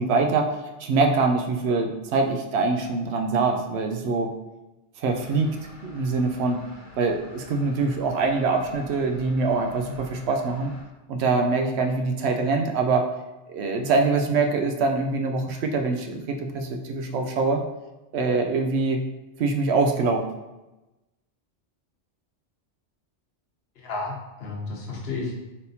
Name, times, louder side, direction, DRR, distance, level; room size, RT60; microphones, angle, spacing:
voice 1, 0.0-4.3 5.0-5.6 5.8-6.6 7.0-10.7 11.1-13.1 13.5-17.6 18.1-19.0 19.4-20.2, right 3 dB, 70° right, 4 dB, 0.8 m, -24 dB
sound 1, 5.0-10.8, left 2 dB, 20° right, 1.1 m, -47 dB
voice 2, 23.8-25.3, left 3 dB, 60° left, -2 dB, 1.1 m, -32 dB
4.2 x 3.6 x 2.7 m, 1.0 s
omnidirectional pair, 1.2 m